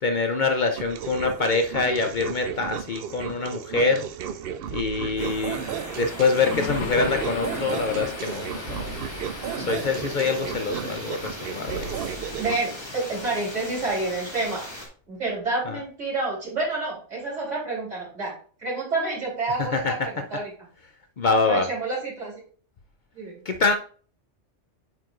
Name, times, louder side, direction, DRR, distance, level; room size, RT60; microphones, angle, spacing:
voice 1, 0.0-4.0 4.7-5.6 6.0-9.0 9.6-11.9 15.7-15.8 19.6-19.9 21.2-21.7 23.5-23.8, left 4 dB, 50° left, 5 dB, 0.6 m, -25 dB
sound 1, 0.8-12.6, right 8 dB, 65° right, 0.7 m, -34 dB
sound 2, 5.2-14.9, left 1 dB, 20° left, 2.0 m, -39 dB
sound 3, 6.3-14.0, left 5 dB, 75° left, 1.2 m, -37 dB
voice 2, 12.4-14.7 15.1-18.3 18.6-20.5 21.4-22.3 23.1-23.4, right 3 dB, 80° right, -6 dB, 4.1 m, -29 dB
9.5 x 4.7 x 2.5 m, 0.43 s
omnidirectional pair, 1.2 m